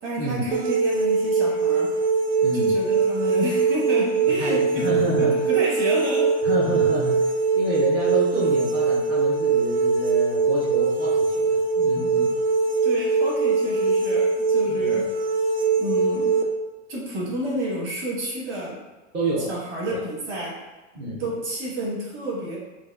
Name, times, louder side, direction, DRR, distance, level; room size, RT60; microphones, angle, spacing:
voice 1, 0.0-2.0 2.5-4.9 5.5-6.3 12.8-15.1 15.8-16.3 16.9-18.8 19.5-20.6 21.2-22.6, right 1 dB, 30° right, -5 dB, 1.2 m, -30 dB
sound 1, 0.5-16.4, right 4 dB, 65° right, 0.6 m, -22 dB
voice 2, 2.4-2.8 4.3-5.5 6.4-12.3 14.7-14.9 19.1-19.5 19.9-20.0 20.9-21.3, right 1 dB, 15° right, -9 dB, 0.3 m, -29 dB
4.6 x 2.1 x 2.3 m, 1.2 s
hypercardioid pair, 130°, 38 cm